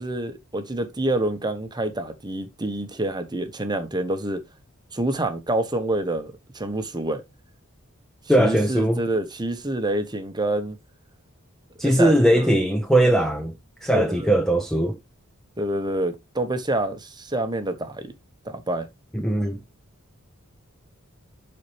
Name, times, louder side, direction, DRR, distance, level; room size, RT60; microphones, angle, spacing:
voice 1, 0.0-4.4 4.9-7.2 8.4-10.8 11.8-12.5 13.9-14.3 15.6-18.1 18.4-18.9, right 1 dB, 20° right, 1.1 m, -27 dB
voice 2, 8.3-9.0 11.8-13.5 13.8-15.0 19.1-19.6, right 1 dB, ahead, 0.7 m, -20 dB
11.0 x 4.3 x 3.3 m
head